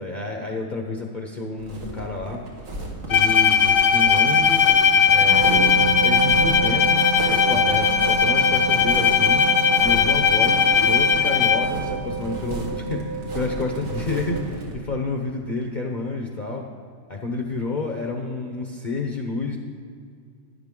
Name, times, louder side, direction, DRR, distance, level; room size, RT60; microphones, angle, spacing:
voice 1, 0.0-2.4 3.1-4.6 5.1-5.5 6.0-9.4 9.8-16.6 17.1-19.6, left 3 dB, 40° left, 2 dB, 0.9 m, -29 dB
sound 1, 1.6-14.7, right 2 dB, 80° right, 2.1 m, -34 dB
Bowed string instrument, 3.1-11.9, left 7 dB, 65° left, 1.1 m, -18 dB
sound 2, 5.3-14.4, right 6 dB, 50° right, 1.7 m, -29 dB
12.0 x 10.0 x 3.7 m, 2.2 s
omnidirectional pair, 1.4 m